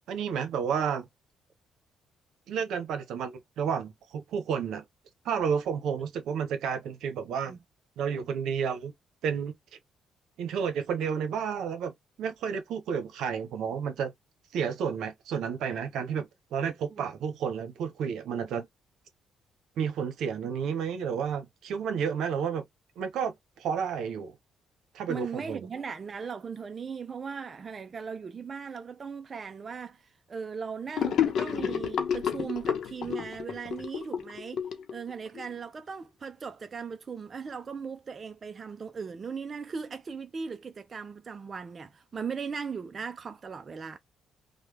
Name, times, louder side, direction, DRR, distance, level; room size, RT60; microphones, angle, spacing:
voice 1, 0.1-1.1 2.5-4.8 5.2-7.6 8.0-8.9 9.2-9.5 10.4-11.9 12.2-14.1 14.5-18.7 19.8-22.6 23.0-24.3 24.9-25.6, right 7 dB, 80° right, 0.8 m, -31 dB
voice 2, 25.1-34.6 34.9-44.0, right 6 dB, 40° right, 0.4 m, -38 dB
Gurgling / Sink (filling or washing), 31.0-35.4, left 8 dB, 70° left, 0.8 m, -30 dB
3.2 x 2.2 x 3.2 m
cardioid pair, 90°, 0 cm